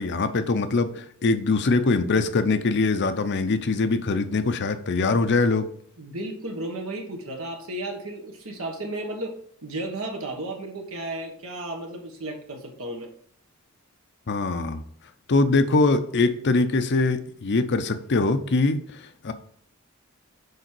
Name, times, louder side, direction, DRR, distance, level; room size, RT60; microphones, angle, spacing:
voice 1, 0.0-5.7 14.3-14.8 15.3-19.3, left 3 dB, 55° left, 10 dB, 0.7 m, -23 dB
voice 2, 6.0-9.3 9.6-13.1, right 1 dB, 75° right, 2 dB, 1.4 m, -33 dB
6.5 x 5.0 x 4.5 m, 0.62 s
head